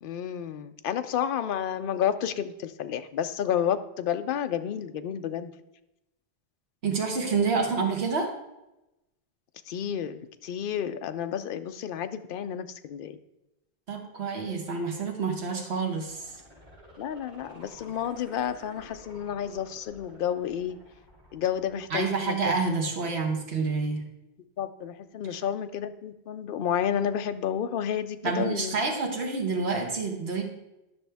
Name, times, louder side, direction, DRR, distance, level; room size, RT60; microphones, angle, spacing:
voice 1, 0.0-5.5 9.7-13.2 17.0-20.8 21.3-22.5 24.6-28.8, left 9 dB, 60° left, 10 dB, 0.7 m, -31 dB
voice 2, 6.8-8.3 13.9-16.3 21.9-24.0 28.2-30.4, right 4 dB, 80° right, 2 dB, 1.5 m, -28 dB
sound 1, 15.9-22.8 23.2-23.3, left 1 dB, 45° right, 3.3 m, -52 dB
10.5 x 6.2 x 3.4 m, 0.93 s
omnidirectional pair, 1.1 m